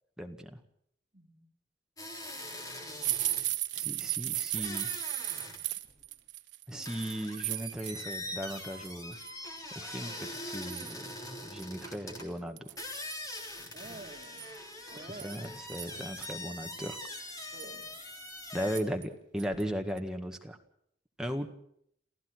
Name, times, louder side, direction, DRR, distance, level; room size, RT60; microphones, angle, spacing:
voice 1, 0.2-0.6 3.7-4.9 6.7-9.2 9.7-11.0 11.4-12.7 14.9-17.0 18.5-20.6 21.2-21.5, equal, 5° right, 3 dB, 1.8 m, -37 dB
voice 2, 1.1-1.5 13.7-14.5 14.9-15.5 17.5-17.9 18.6-18.7, right 2 dB, 35° right, 0 dB, 3.6 m, -48 dB
sound 1, 2.0-3.5 4.5-5.6 5.9-6.0 6.9-12.3 12.8-18.8, left 1 dB, 20° left, 3.5 m, -43 dB
sound 2, 3.0-8.4 8.7-9.3 9.9-10.0 10.3-11.1 11.6-11.7 11.9-12.0 12.6-13.2 14.2-16.3 16.8-16.9 17.3-17.8 18.7-19.1 19.4-19.6 20.0-20.1, right 15 dB, 90° right, 1.1 m, -36 dB
28.0 x 15.0 x 6.3 m, 0.70 s
head